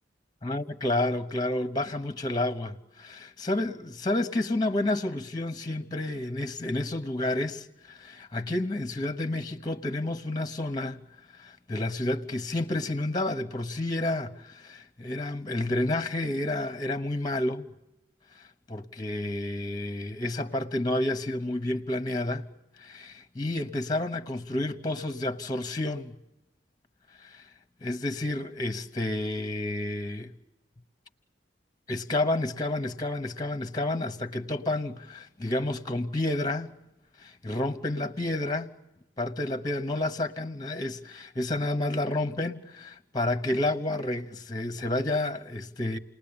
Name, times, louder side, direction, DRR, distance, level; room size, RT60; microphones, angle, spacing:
voice 1, 0.4-11.0 11.3-17.7 18.3-22.5 22.8-26.2 27.2-27.5 27.8-30.3 31.9-36.7 37.2-38.7 39.2-46.0, left 1 dB, 25° left, 1.0 m, -30 dB
29.5 x 20.0 x 8.8 m
head